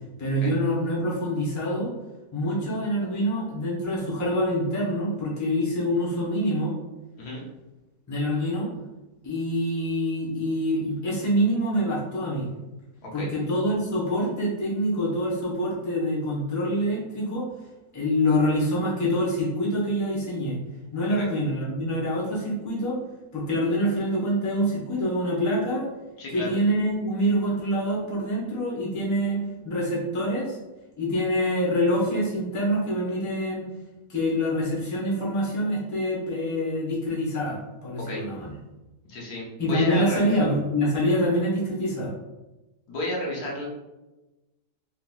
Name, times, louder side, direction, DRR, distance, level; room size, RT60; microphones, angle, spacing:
voice 1, 0.2-1.9 2.3-6.7 8.1-8.7 9.2-12.5 13.1-17.5 17.9-20.6 20.9-23.0 23.3-25.9 26.3-29.4 29.6-30.6 31.0-33.7 34.1-38.5 39.6-42.1, equal, 15° left, -6 dB, 0.7 m, -25 dB
voice 2, 26.2-26.5 38.0-38.2 39.1-40.3 42.9-43.7, left 1 dB, 80° left, -3 dB, 1.4 m, -32 dB
3.9 x 3.1 x 2.2 m, 1.1 s
omnidirectional pair, 1.7 m